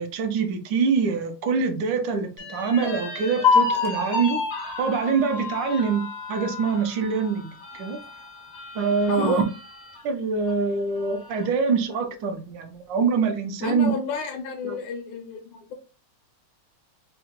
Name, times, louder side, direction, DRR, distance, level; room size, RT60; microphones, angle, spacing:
voice 1, 0.0-4.4 4.8-8.0 8.7-9.4 10.0-13.9 14.6-14.8, right 5 dB, 75° right, 1.3 m, -24 dB
sound 1, 2.4-10.0 10.5-10.6 11.0-11.6, left 5 dB, 60° left, 0.6 m, -29 dB
voice 2, 9.1-9.5 13.6-15.7, left 5 dB, 80° left, 1.3 m, -31 dB
3.7 x 2.1 x 2.8 m
omnidirectional pair, 2.0 m